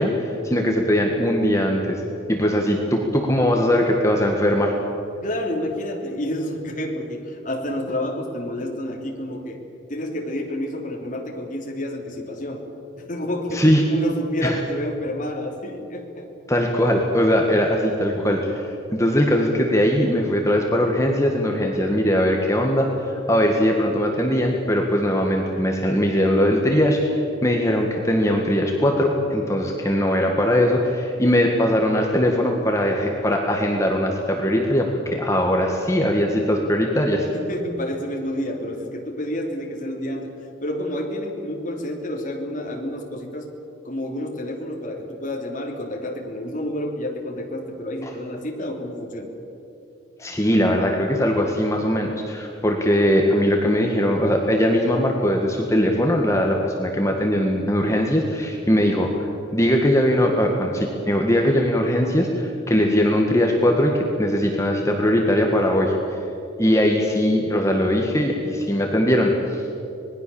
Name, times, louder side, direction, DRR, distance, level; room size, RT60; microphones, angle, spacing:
voice 1, 0.0-2.0 2.3-4.7 13.5-13.8 14.4-14.6 16.5-18.7 18.9-22.9 23.3-37.2 48.0-48.1 50.2-65.9 66.6-69.6, equal, 15° left, 1 dB, 1.7 m, -20 dB
voice 2, 5.2-9.6 9.9-12.6 13.0-16.3 37.3-40.3 40.6-43.5 43.8-49.3, left 1 dB, 40° left, 0 dB, 3.3 m, -29 dB
26.0 x 20.0 x 7.1 m, 2.8 s
head